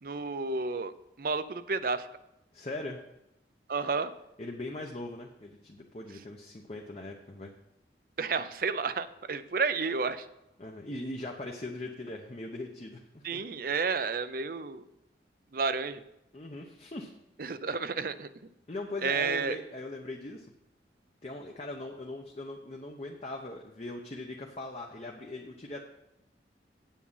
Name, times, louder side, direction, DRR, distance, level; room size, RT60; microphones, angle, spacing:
voice 1, 0.0-0.9 1.2-2.1 3.7-4.1 8.2-10.3 13.2-14.8 15.5-16.0 17.4-18.3 19.0-19.5, right 4 dB, 55° right, 13 dB, 0.5 m, -31 dB
voice 2, 2.5-3.0 4.4-7.5 10.6-13.4 16.3-17.1 18.7-20.5 21.2-25.8, left 2 dB, 35° left, 1 dB, 0.8 m, -40 dB
8.4 x 7.3 x 5.6 m, 0.87 s
head